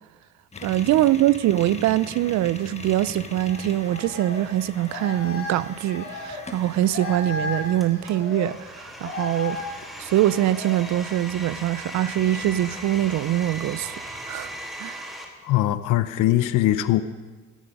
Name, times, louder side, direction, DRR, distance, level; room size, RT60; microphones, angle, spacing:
sound 1, 0.5-7.9, left 3 dB, 20° left, 1.4 m, -41 dB
voice 1, 0.6-9.6 10.0-14.0 14.3-14.5 14.8-15.0, right 13 dB, 65° right, 0.5 m, -23 dB
sound 2, 3.5-14.6, left 3 dB, 40° left, 4.0 m, -37 dB
Domestic sounds home sounds, 7.8-15.3, equal, ahead, 1.9 m, -38 dB
voice 2, 15.4-17.0, left 14 dB, 90° left, 0.7 m, -21 dB
13.5 x 10.0 x 5.2 m
cardioid pair, 90°, 30 cm